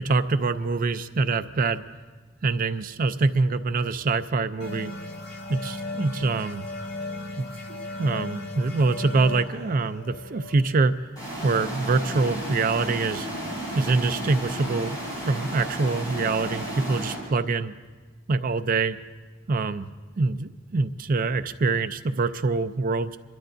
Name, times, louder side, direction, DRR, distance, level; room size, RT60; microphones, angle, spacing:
voice 1, 0.0-1.8 2.4-4.9 5.5-6.6 7.4-10.9 11.4-13.3 13.7-15.0 15.2-17.7 18.3-19.0 19.5-19.9 20.2-23.2, right 3 dB, 45° right, 11 dB, 0.5 m, -25 dB
sound 1, 4.6-11.9, left 2 dB, 60° left, 1.7 m, -37 dB
sound 2, 11.2-17.2, right 1 dB, 20° left, 5.6 m, -33 dB
30.0 x 12.5 x 2.6 m, 1.3 s
head